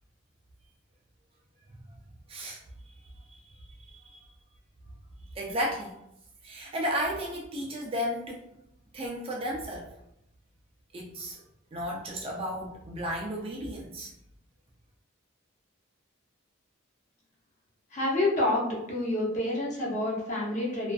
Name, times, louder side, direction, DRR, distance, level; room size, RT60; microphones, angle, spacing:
voice 1, 2.3-2.6 3.3-3.4 3.9-4.2 5.4-6.0 6.4-8.4 8.9-9.9 10.9-11.4 11.7-14.1, equal, 25° right, -2 dB, 0.3 m, -33 dB
voice 2, 17.9-20.9, left 1 dB, 35° left, -4 dB, 0.6 m, -28 dB
2.4 x 2.4 x 2.2 m, 0.79 s
head